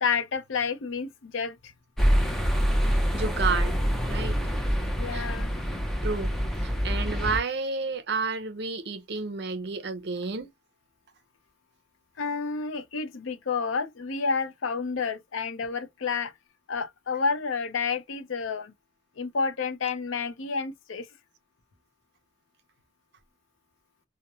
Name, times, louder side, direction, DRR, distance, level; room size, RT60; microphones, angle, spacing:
voice 1, 0.0-1.7 5.0-5.5 12.2-16.3 16.7-18.7 19.2-21.1, left 5 dB, 80° left, 0.5 m, -30 dB
sound 1, 2.0-7.4, equal, ahead, 0.5 m, -26 dB
voice 2, 2.9-3.8 4.1-4.4 5.1-5.3 6.0-6.4 6.6-10.5, right 4 dB, 55° right, 0.6 m, -31 dB
2.9 x 2.1 x 2.3 m
head